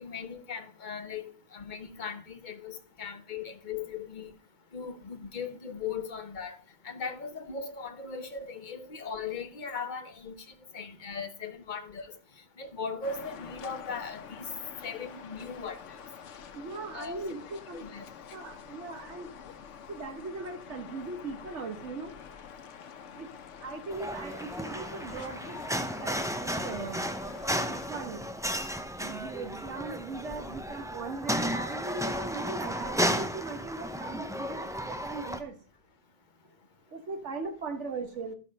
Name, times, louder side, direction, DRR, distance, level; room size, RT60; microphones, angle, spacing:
voice 1, 0.0-4.3 4.7-6.6 6.8-10.4 10.7-12.1 12.6-14.5 14.8-16.0 16.9-17.2 17.7-18.1, left 5 dB, 45° left, 1.0 m, -38 dB
sound 1, 13.0-27.9, left 7 dB, 80° left, 1.1 m, -47 dB
voice 2, 16.5-18.0 18.3-19.3 19.9-22.1 23.1-23.3 23.6-25.6 26.0-27.0 27.7-28.3 29.0-35.6 36.9-38.3, right 3 dB, 75° right, 1.6 m, -39 dB
sound 2, 23.9-35.4, equal, 5° right, 0.3 m, -33 dB
12.0 x 5.9 x 5.2 m
omnidirectional pair, 1.2 m